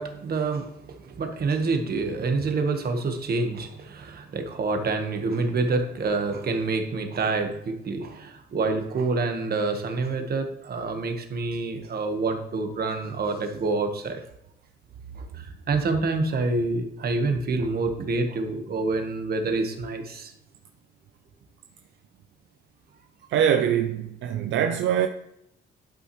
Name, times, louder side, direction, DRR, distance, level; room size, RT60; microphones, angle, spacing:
voice 1, 0.0-14.2 15.2-20.3, right 3 dB, 50° right, 1.4 m, -27 dB
voice 2, 23.3-25.1, right 9 dB, 80° right, 0.6 m, -23 dB
11.5 x 5.5 x 3.2 m
cardioid pair, 90°, 20 cm